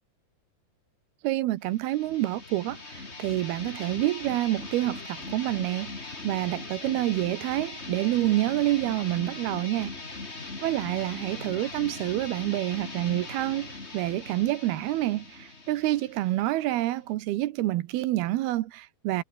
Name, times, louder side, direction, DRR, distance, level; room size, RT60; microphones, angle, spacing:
voice 1, 1.2-2.8 3.2-5.9 6.2-9.9 10.6-19.2, right 16 dB, 75° right, 2.8 m, -27 dB
sound 1, 1.7-17.1, left 3 dB, 20° left, 2.7 m, -40 dB
omnidirectional pair, 4.8 m